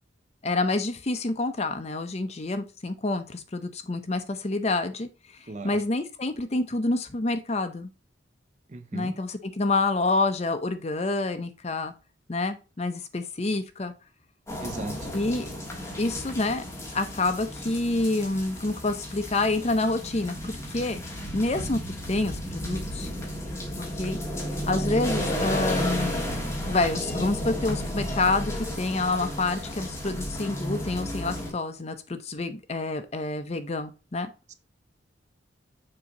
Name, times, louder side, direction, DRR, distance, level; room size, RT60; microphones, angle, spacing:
voice 1, 0.4-5.1 5.6-7.9 8.9-11.9 12.3-13.9 15.1-15.5 16.0-16.6 16.9-21.0 21.3-21.8 22.1-23.1 23.8-24.2 24.7-26.2 26.7-34.3, left 2 dB, 35° left, 0.6 m, -28 dB
voice 2, 5.5-5.8 8.7-9.2 14.6-15.1 34.5-34.6, right 2 dB, 35° right, 0.5 m, -37 dB
sound 1, 14.5-31.5, equal, 15° left, 1.5 m, -33 dB
6.7 x 2.8 x 5.1 m
head